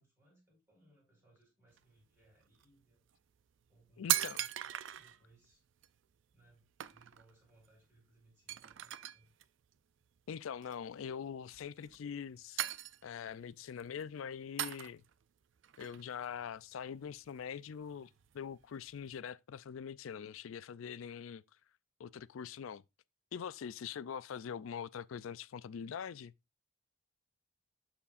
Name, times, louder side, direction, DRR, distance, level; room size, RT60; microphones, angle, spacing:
voice 1, 0.0-3.0 3.7-5.6 6.3-9.3, right 2 dB, 10° right, 5.0 m, -68 dB
sound 1, 1.7-1.8 2.4-2.6 3.4-3.5 3.7-5.2 5.8-5.9 6.3-6.5 6.8-7.3 7.6-7.7 8.0-8.1 8.5-9.4 10.6-11.0 11.5-12.2 12.6-13.3 13.7-14.0 14.6-15.2 15.6-16.9 17.3-19.2, right 13 dB, 60° right, 0.4 m, -39 dB
voice 2, 4.0-4.4 10.3-12.6 13.0-15.0 15.8-18.1 18.3-21.4 22.0-22.8 23.3-26.3, left 7 dB, 80° left, 0.4 m, -43 dB
12.5 x 4.4 x 2.5 m
head